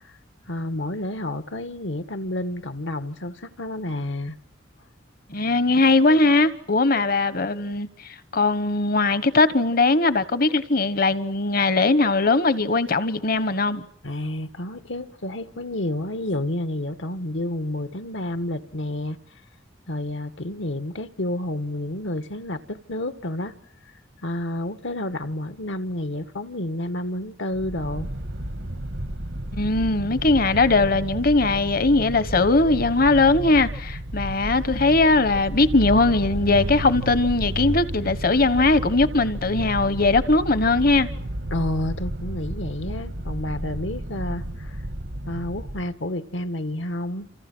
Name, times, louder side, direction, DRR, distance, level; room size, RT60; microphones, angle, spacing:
voice 1, 0.5-4.4 14.0-19.2 19.9-23.5 24.2-28.1 41.5-44.8 45.3-47.3, left 1 dB, 75° left, 1.6 m, -30 dB
voice 2, 5.3-7.9 8.3-13.8 29.5-41.1, left 3 dB, 50° left, 1.2 m, -20 dB
sound 1, 27.5-45.9, right 1 dB, 90° right, 2.2 m, -32 dB
29.5 x 27.5 x 6.2 m
head